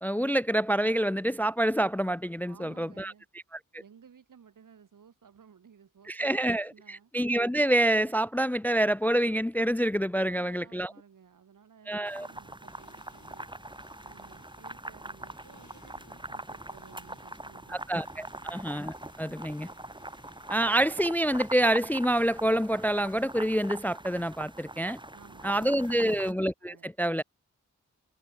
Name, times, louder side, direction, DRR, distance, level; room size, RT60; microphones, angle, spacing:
voice 1, 0.0-3.1 6.1-10.9 11.9-12.3 17.7-19.7 20.5-25.0 25.4-27.2, right 1 dB, 5° left, 0.4 m, -27 dB
voice 2, 2.5-3.3 3.8-7.1 10.2-13.5 14.0-18.0 18.3-18.6 25.1-26.2 26.6-26.9, right 7 dB, 80° right, 7.7 m, -56 dB
sound 1, 12.1-26.3, right 1 dB, 15° right, 2.9 m, -43 dB
sound 2, 12.6-23.2, left 5 dB, 65° left, 4.5 m, -62 dB
cardioid pair, 45°, 31 cm